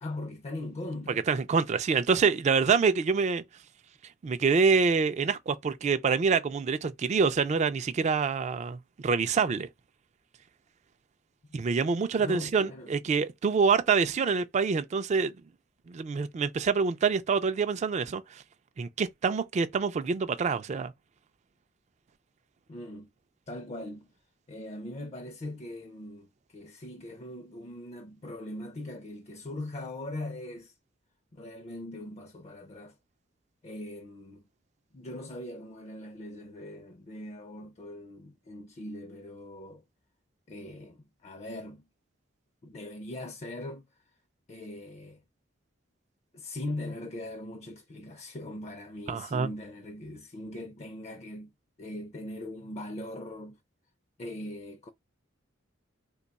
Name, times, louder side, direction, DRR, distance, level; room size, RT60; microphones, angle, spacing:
voice 1, 0.0-1.3 12.2-12.9 22.7-23.1 23.5-24.1 24.5-30.7 31.3-33.0 33.6-34.4 34.9-39.8 40.5-41.8 42.6-44.0 44.5-45.2 46.3-51.5 51.8-53.6 54.2-54.9, left 1 dB, 35° left, 0.4 m, -40 dB
voice 2, 1.1-3.4 4.2-9.7 11.5-15.3 15.9-18.4 18.8-20.9 49.1-49.5, right 5 dB, 35° right, 0.3 m, -26 dB
3.0 x 2.2 x 4.0 m
head